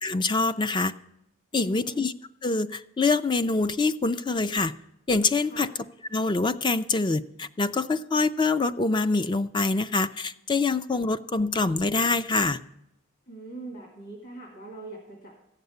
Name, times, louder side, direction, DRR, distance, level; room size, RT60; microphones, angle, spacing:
voice 1, 0.0-0.9 1.5-2.1 2.4-4.7 5.1-5.7 6.1-12.6, left 3 dB, 25° left, 12 dB, 0.4 m, -25 dB
voice 2, 1.5-2.0 5.4-5.7 13.3-15.3, right 2 dB, 40° left, -1 dB, 2.6 m, -42 dB
14.5 x 6.7 x 9.4 m, 0.84 s
head